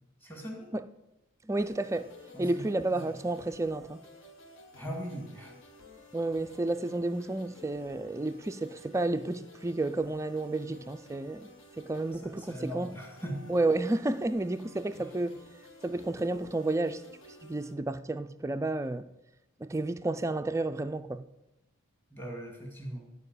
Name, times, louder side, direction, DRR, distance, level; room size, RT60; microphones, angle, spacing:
voice 1, 0.2-0.7 2.3-3.1 4.8-5.6 12.1-13.5 14.9-15.0 22.1-23.1, right 1 dB, 10° left, 2.1 m, -40 dB
voice 2, 1.4-2.1 2.4-4.0 6.1-11.5 11.8-12.9 13.5-15.4 15.8-17.0 17.4-19.1 19.6-21.3, right 2 dB, 15° right, 0.3 m, -31 dB
sound 1, 1.6-17.7, left 2 dB, 65° left, 1.5 m, -53 dB
12.0 x 4.8 x 8.2 m
head